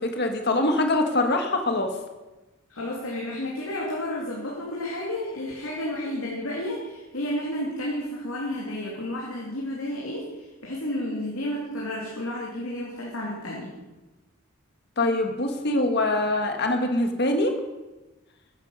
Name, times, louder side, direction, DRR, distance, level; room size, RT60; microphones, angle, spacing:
voice 1, 0.0-1.9 15.0-17.5, left 2 dB, 55° left, 5 dB, 1.6 m, -24 dB
voice 2, 2.7-13.7, left 1 dB, 80° left, -3 dB, 2.7 m, -31 dB
14.5 x 10.0 x 5.5 m, 1.1 s
head